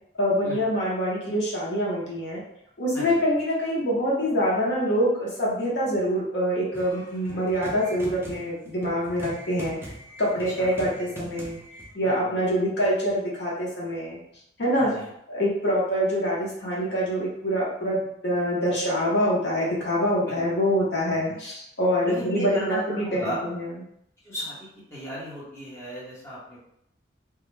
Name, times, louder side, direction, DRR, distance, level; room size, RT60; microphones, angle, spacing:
voice 1, 0.2-2.4 2.8-9.9 10.2-11.6 11.9-14.2 14.6-14.9 15.3-23.8, equal, 65° left, -6 dB, 0.7 m, -25 dB
sound 1, 6.7-11.9, right 1 dB, 10° right, 0.3 m, -42 dB
voice 2, 12.0-12.4 14.8-15.0 20.3-20.4 21.3-21.4 22.0-23.4 24.2-26.6, equal, 15° left, -9 dB, 0.9 m, -35 dB
2.3 x 2.0 x 3.1 m, 0.77 s
head